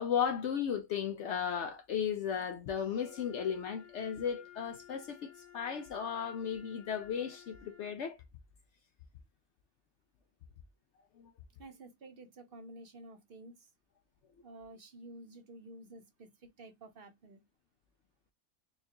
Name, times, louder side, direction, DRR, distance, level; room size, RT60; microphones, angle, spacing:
voice 1, 0.0-8.2 11.2-11.3, left 8 dB, 65° left, 0.8 m, -35 dB
Wind instrument woodwind instrument, 2.9-8.1, left 11 dB, 45° left, 2.1 m, -56 dB
voice 2, 11.6-13.7 14.4-17.4, right 2 dB, 50° right, 0.8 m, -51 dB
4.3 x 2.4 x 2.7 m
omnidirectional pair, 1.4 m